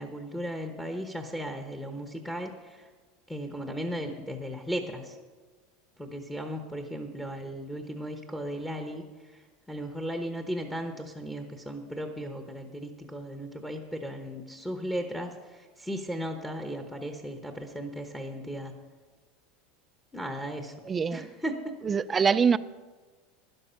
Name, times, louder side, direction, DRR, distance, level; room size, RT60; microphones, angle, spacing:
voice 1, 0.0-2.9 3.3-5.2 6.0-9.0 9.3-9.4 9.7-18.7 20.1-20.7 21.1-21.7, equal, 5° left, 5 dB, 1.0 m, -36 dB
voice 2, 20.9-21.3 21.8-22.6, right 6 dB, 20° right, 15 dB, 0.4 m, -24 dB
12.0 x 11.0 x 5.6 m, 1.4 s
supercardioid pair, 140°, 0 cm